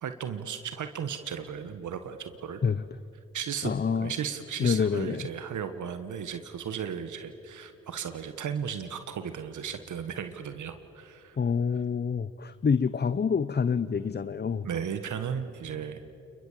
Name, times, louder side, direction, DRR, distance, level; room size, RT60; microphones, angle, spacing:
voice 1, 0.0-2.6 3.3-3.7 4.0-11.4 14.6-16.0, right 7 dB, 70° right, 9 dB, 1.4 m, -35 dB
voice 2, 3.6-4.1 4.6-5.3 11.4-14.7, left 6 dB, 35° left, 15 dB, 0.7 m, -27 dB
28.5 x 21.5 x 7.4 m, 2.8 s
supercardioid pair, 50°, 31 cm